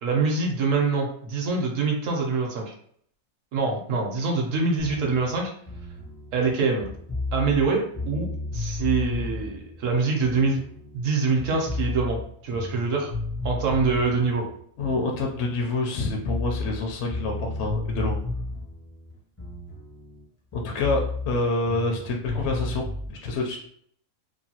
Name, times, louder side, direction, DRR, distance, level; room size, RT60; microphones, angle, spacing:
voice 1, 0.0-2.7 3.5-5.5 6.3-6.9 7.3-10.6 10.9-13.1 13.4-14.5, right 4 dB, 65° right, 0 dB, 0.9 m, -25 dB
sound 1, 4.8-11.1 11.4-15.7 15.9-20.2 20.5-23.1, left 2 dB, 20° left, 0.4 m, -33 dB
voice 2, 14.8-18.2 20.5-23.7, left 3 dB, 65° left, 0 dB, 0.7 m, -27 dB
2.9 x 2.2 x 2.8 m, 0.63 s
omnidirectional pair, 1.6 m